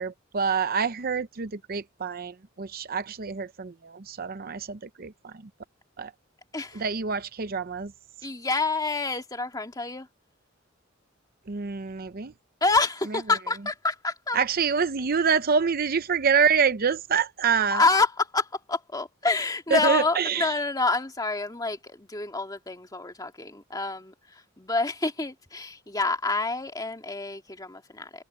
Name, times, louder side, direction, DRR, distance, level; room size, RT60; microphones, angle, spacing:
voice 1, 0.0-5.3 6.0-6.1 6.8-7.9 11.5-12.3 14.3-17.8 19.7-20.5, right 6 dB, 50° right, 0.7 m, -26 dB
voice 2, 8.2-10.1 12.6-14.5 17.7-28.2, left 3 dB, 20° left, 2.1 m, -27 dB
head